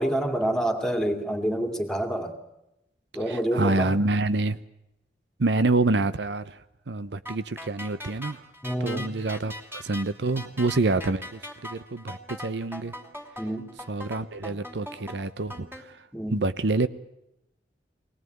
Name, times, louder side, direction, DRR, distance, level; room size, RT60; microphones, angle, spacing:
voice 1, 0.0-2.4 3.1-3.9 8.6-9.1 13.4-13.7 16.1-16.4, right 1 dB, 5° left, 6 dB, 2.4 m, -27 dB
voice 2, 3.3-4.6 5.4-6.6 6.9-8.4 8.8-12.9 13.9-16.0 16.3-16.9, right 2 dB, 70° right, 13 dB, 0.8 m, -27 dB
sound 1, 7.3-15.8, left 1 dB, 10° right, 3.0 m, -40 dB
24.0 x 18.5 x 9.3 m, 0.88 s
head